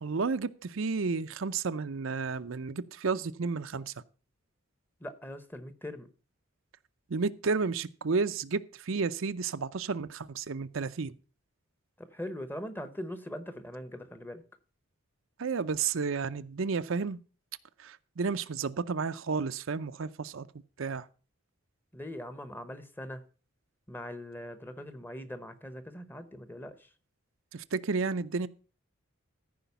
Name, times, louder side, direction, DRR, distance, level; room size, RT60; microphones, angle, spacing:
voice 1, 0.0-3.9 7.1-11.1 15.4-17.2 17.8-20.5 20.8-21.1 27.5-28.5, right 4 dB, 70° right, 0.6 m, -32 dB
voice 2, 5.0-6.1 12.0-14.4 21.9-23.2 23.9-26.9, left 1 dB, 10° left, 0.9 m, -41 dB
14.0 x 5.1 x 6.8 m
head